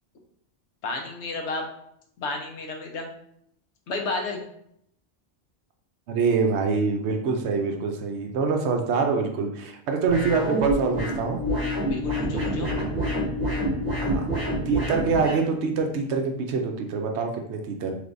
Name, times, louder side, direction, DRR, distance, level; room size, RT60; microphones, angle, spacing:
voice 1, 0.8-1.7 2.2-3.1 3.9-4.4 11.9-12.7, left 3 dB, 70° left, 2 dB, 0.9 m, -31 dB
voice 2, 6.1-11.4 14.0-14.2 14.7-17.9, right 4 dB, 70° right, 3 dB, 0.8 m, -25 dB
sound 1, 10.1-15.4, equal, 45° right, 1.2 m, -27 dB
3.4 x 3.2 x 2.5 m, 0.71 s
omnidirectional pair, 1.2 m